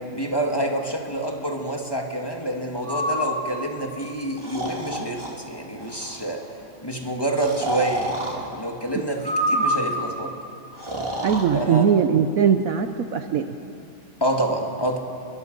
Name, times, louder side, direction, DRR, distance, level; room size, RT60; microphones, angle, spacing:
voice 1, 0.1-6.5 6.8-10.3 11.5-11.9 14.2-15.0, right 1 dB, 15° left, 1 dB, 1.8 m, -27 dB
Breathing, 2.8-3.4 4.4-5.3 5.8-6.2 7.4-8.4 9.2-10.1 10.8-11.4, right 1 dB, 15° right, 2.5 m, -26 dB
voice 2, 11.2-13.5, right 7 dB, 60° right, 8 dB, 1.1 m, -20 dB
28.5 x 22.0 x 5.3 m, 2.6 s
omnidirectional pair, 1.8 m